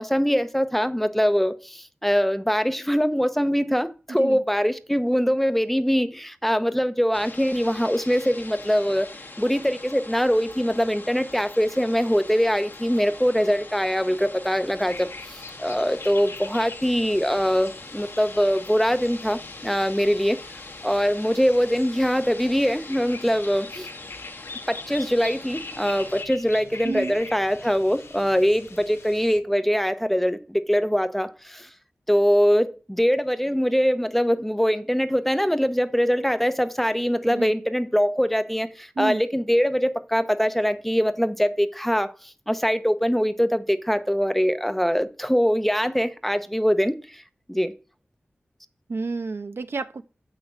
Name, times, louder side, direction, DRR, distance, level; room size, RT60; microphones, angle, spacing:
voice 1, 0.0-9.1 9.4-20.4 20.8-23.9 24.7-31.7 32.1-42.1 42.5-47.2 47.5-47.7, equal, 5° left, 0.7 m, -23 dB
voice 2, 4.1-4.4 26.8-27.2 37.3-37.5 39.0-39.2 48.9-50.0, right 4 dB, 65° right, 0.8 m, -30 dB
sound 1, 7.1-26.2, left 2 dB, 50° left, 1.4 m, -43 dB
sound 2, 14.8-29.4, left 3 dB, 80° left, 1.1 m, -43 dB
7.5 x 6.2 x 7.8 m
wide cardioid pair, 85°, 4 cm